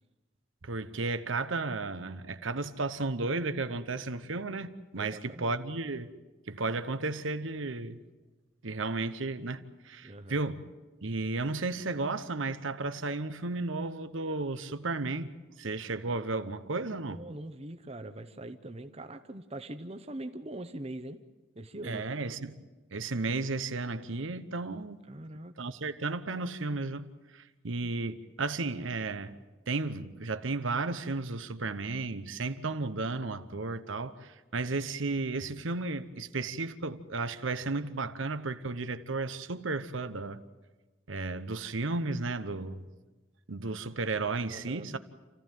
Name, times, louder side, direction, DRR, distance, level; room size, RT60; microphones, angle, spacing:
voice 1, 0.6-6.1 6.5-8.0 8.6-10.6 11.0-17.2 21.8-22.6 22.9-25.0 25.6-29.4 29.7-40.4 41.1-42.9 43.5-45.0, right 3 dB, 80° right, 1.0 m, -34 dB
voice 2, 4.9-5.6 10.0-10.4 17.1-21.2 21.5-22.0 25.1-25.5 44.5-45.0, right 1 dB, 30° right, 0.9 m, -42 dB
28.5 x 15.0 x 9.2 m
head